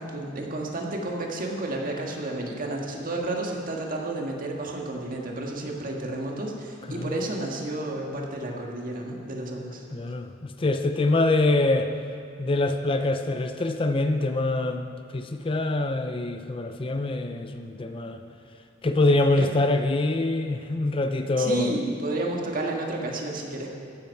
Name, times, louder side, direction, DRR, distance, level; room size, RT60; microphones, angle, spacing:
voice 1, 0.0-9.8 19.4-19.5 21.4-23.7, right 2 dB, 45° right, 0 dB, 1.7 m, -31 dB
voice 2, 9.9-11.9 12.4-18.2 18.8-21.8, left 2 dB, 30° left, 7 dB, 0.5 m, -25 dB
14.5 x 11.0 x 4.7 m, 2.5 s
head